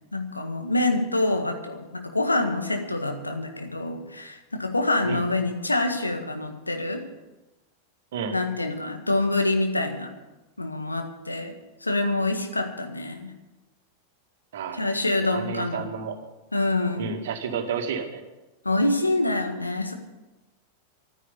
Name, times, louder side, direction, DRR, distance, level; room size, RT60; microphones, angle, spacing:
voice 1, 0.1-7.0 8.3-10.1 10.6-11.5 11.8-13.3 14.7-15.9 16.5-17.1 18.6-19.9, left 2 dB, 80° left, 5 dB, 1.7 m, -26 dB
voice 2, 14.5-16.2 16.9-18.2, right 6 dB, 55° right, 5 dB, 2.0 m, -31 dB
12.0 x 9.9 x 9.8 m, 1.1 s
figure-of-eight pair, 90°, 0 cm